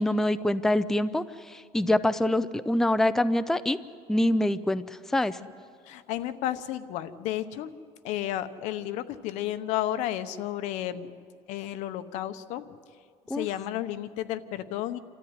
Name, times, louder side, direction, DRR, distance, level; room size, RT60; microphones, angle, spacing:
voice 1, 0.0-3.8 4.1-5.4 13.3-13.5, left 1 dB, 5° left, 12 dB, 0.5 m, -25 dB
voice 2, 5.8-7.7 8.0-11.1 11.5-12.7 13.3-15.0, left 12 dB, 75° left, 12 dB, 1.0 m, -32 dB
27.5 x 13.5 x 9.8 m, 2.2 s
cardioid pair, 140°, 12 cm